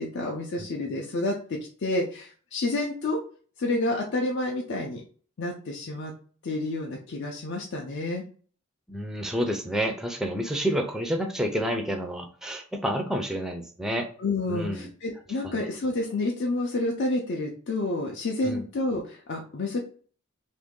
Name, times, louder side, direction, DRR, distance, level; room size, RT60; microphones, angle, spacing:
voice 1, 0.0-3.2 3.6-5.0 5.4-6.1 6.4-8.2 14.2-19.8, left 2 dB, 55° left, 0 dB, 0.5 m, -29 dB
voice 2, 8.9-14.1 14.5-14.8 15.5-15.7 18.4-18.6, equal, 5° right, 3 dB, 0.4 m, -29 dB
2.9 x 2.6 x 3.6 m, 0.44 s
head